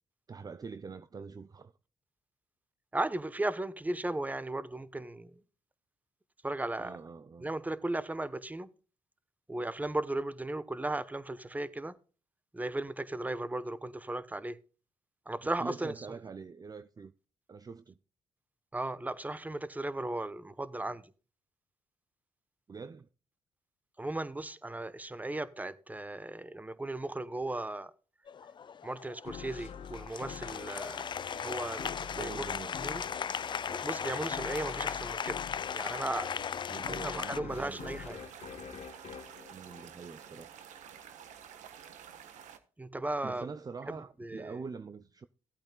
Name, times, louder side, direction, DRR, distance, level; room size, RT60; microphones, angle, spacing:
voice 1, 0.3-1.7 6.8-7.5 15.6-17.1 17.5-18.0 22.7-23.1 32.1-32.8 36.7-38.0 39.5-40.5 43.2-45.3, right 5 dB, 30° right, 0.5 m, -44 dB
voice 2, 2.9-5.3 6.4-7.0 7.4-8.7 9.5-11.9 12.5-14.6 15.3-16.1 18.7-21.0 24.0-27.9 28.8-32.5 32.8-33.0 33.7-35.4 35.7-36.3 36.9-38.2 42.8-43.5 43.9-44.5, right 2 dB, 15° right, 0.9 m, -36 dB
Applause, 28.3-37.4, left 7 dB, 40° left, 0.4 m, -37 dB
sound 1, 29.2-40.4, left 7 dB, 60° left, 1.2 m, -45 dB
sound 2, 37.5-42.6, right 9 dB, 80° right, 1.2 m, -50 dB
16.0 x 8.7 x 2.3 m
cardioid pair, 70°, 12 cm